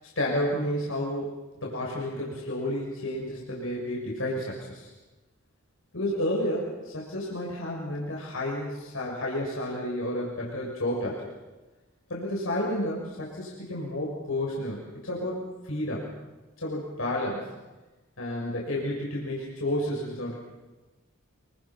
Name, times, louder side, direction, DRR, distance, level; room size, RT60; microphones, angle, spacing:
voice 1, 0.2-1.3 1.6-4.9 5.9-11.3 12.1-16.1 16.6-17.5 18.2-20.4, left 1 dB, 80° left, -3 dB, 6.3 m, -31 dB
26.0 x 25.0 x 6.0 m, 1.1 s
head